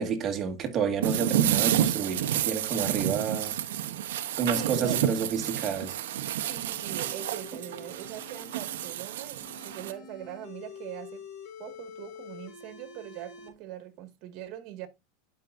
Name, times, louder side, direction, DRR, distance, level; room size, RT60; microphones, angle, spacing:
voice 1, 0.0-3.6 4.4-6.0, right 6 dB, 35° right, 1.9 m, -30 dB
sound 1, 1.0-9.9, right 11 dB, 80° right, 0.9 m, -30 dB
voice 2, 4.3-5.0 6.4-11.2 11.6-14.9, right 12 dB, 50° right, 1.9 m, -41 dB
sound 2, 5.0-8.9 9.4-13.5, left 6 dB, 45° left, 3.5 m, -48 dB
11.5 x 5.7 x 2.6 m
supercardioid pair, 120°, 0 cm